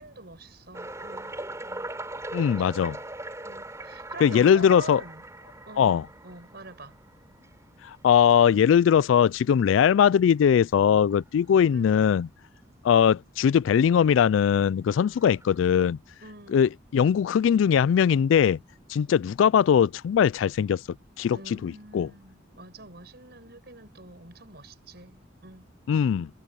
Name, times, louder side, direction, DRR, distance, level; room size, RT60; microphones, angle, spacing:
voice 1, 0.0-1.3 1.6-1.9 2.4-2.8 3.4-5.2 5.7-7.0 11.7-12.0 16.2-16.7 21.3-26.1, right 2 dB, 55° right, 5.9 m, -46 dB
sound 1, 0.7-7.6 8.3-8.4 9.0-9.1 9.7-9.8 11.1-11.2 14.0-14.1 14.9-15.6, right 2 dB, 15° right, 4.3 m, -40 dB
voice 2, 2.3-3.0 4.2-5.0 5.8-6.0 7.8-12.3 12.8-16.0 16.5-18.6 18.9-20.8 21.2-22.1 25.9-26.3, left 8 dB, 80° left, 0.3 m, -21 dB
head